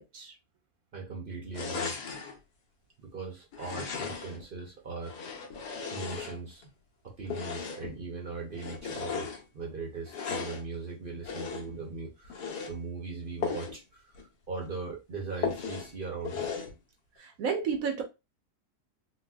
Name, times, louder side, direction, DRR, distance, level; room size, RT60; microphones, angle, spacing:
voice 1, 0.9-1.9 3.0-5.2 5.9-6.6 7.0-16.5, right 4 dB, 45° right, 0.7 m, -39 dB
sound 1, 1.5-2.4 3.5-4.4 5.0-6.7 7.2-8.0 8.5-9.4 10.0-10.7 11.2-11.8 12.2-12.7 13.4-13.8 14.1-14.2 14.6-14.7 15.4-15.9 16.2-16.7, left 5 dB, 85° left, 1.3 m, -36 dB
voice 2, 17.2-18.0, right 6 dB, 70° right, 1.0 m, -31 dB
3.9 x 2.2 x 2.3 m
omnidirectional pair, 1.7 m